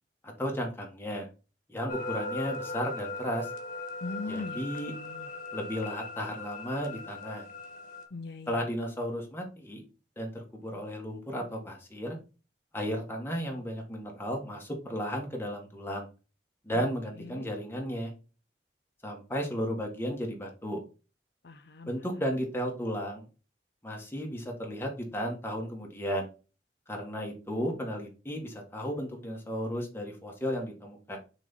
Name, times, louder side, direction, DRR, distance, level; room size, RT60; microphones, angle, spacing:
voice 1, 0.2-1.3 1.7-3.5 4.3-4.9 5.5-7.5 8.5-9.8 10.2-12.2 12.7-16.1 16.6-18.1 19.0-20.8 21.9-23.2 23.8-26.3 26.9-31.2, equal, 15° left, 1 dB, 1.6 m, -34 dB
sound 1, 1.9-8.0, left 3 dB, 50° left, 1.5 m, -39 dB
voice 2, 4.0-5.3 8.1-8.6 17.3-17.5 21.4-21.9, left 3 dB, 65° left, 7 dB, 0.7 m, -40 dB
6.1 x 4.2 x 4.1 m, 0.33 s
head